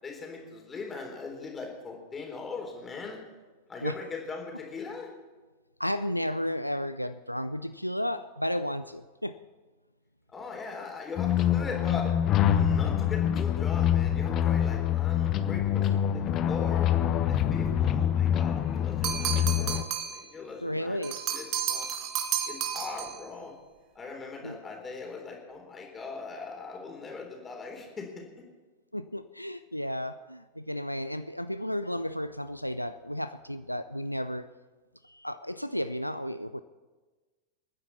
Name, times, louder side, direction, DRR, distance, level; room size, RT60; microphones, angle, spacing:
voice 1, 0.0-3.2 3.7-5.1 10.3-12.2 12.5-16.9 17.3-21.0 21.3-21.9 22.5-23.6 23.9-28.5, left 4 dB, 20° left, 1 dB, 3.7 m, -40 dB
voice 2, 5.8-9.4 20.6-21.2 24.4-24.6 28.9-34.5 35.0-36.6, equal, 90° left, 12 dB, 0.4 m, -33 dB
sound 1, 11.2-19.8, left 10 dB, 35° left, 0.9 m, -25 dB
sound 2, 19.0-20.3 21.0-23.2, right 10 dB, 40° right, 1.3 m, -32 dB
29.0 x 9.8 x 4.2 m, 1.3 s
figure-of-eight pair, 90°, 0 cm